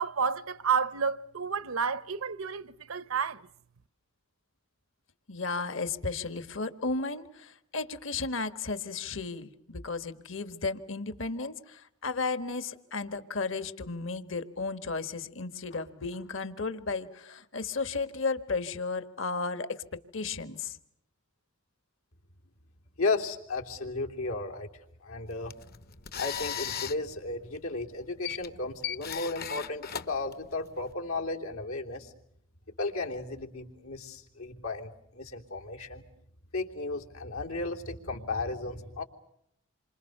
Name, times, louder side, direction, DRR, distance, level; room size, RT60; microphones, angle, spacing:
voice 1, 0.0-3.5, right 6 dB, 75° right, 1.0 m, -30 dB
voice 2, 5.3-20.8, left 4 dB, 60° left, 1.5 m, -34 dB
voice 3, 23.0-24.7 25.0-25.5 26.2-32.1 32.8-36.0 36.5-39.0, left 3 dB, 85° left, 3.3 m, -34 dB
sound 1, 25.3-30.9, left 9 dB, 45° left, 0.9 m, -38 dB
28.0 x 25.5 x 6.7 m
head